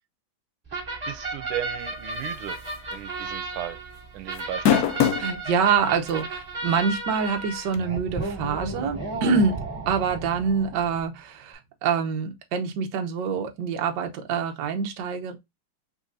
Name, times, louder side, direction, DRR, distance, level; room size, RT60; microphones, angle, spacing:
sound 1, 0.7-11.0, right 3 dB, 20° right, 2.3 m, -34 dB
voice 1, 1.1-2.6 2.9-3.8 4.1-5.1, right 13 dB, 90° right, 1.5 m, -35 dB
sound 2, 2.7-2.9 3.3-3.4 4.4-5.3 6.1-6.2 7.7-7.8, left 9 dB, 75° left, 0.8 m, -21 dB
voice 2, 5.1-9.6 9.9-15.4, right 6 dB, 65° right, 1.3 m, -26 dB
5.3 x 2.8 x 2.5 m
omnidirectional pair, 2.3 m